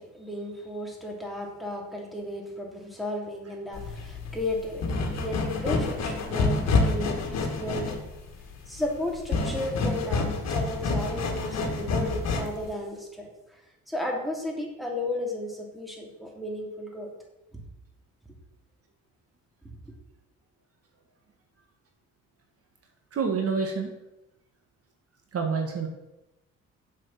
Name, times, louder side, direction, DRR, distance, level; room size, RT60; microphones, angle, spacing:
voice 1, 0.0-8.0 8.7-17.1 19.6-19.7, left 1 dB, ahead, -1 dB, 2.9 m, -34 dB
sound 1, 3.7-12.7, left 3 dB, 60° left, 1.8 m, -28 dB
voice 2, 23.1-23.9 25.3-25.9, right 5 dB, 50° right, 3 dB, 1.6 m, -27 dB
7.4 x 6.5 x 7.3 m, 0.94 s
cardioid pair, 90°, 30 cm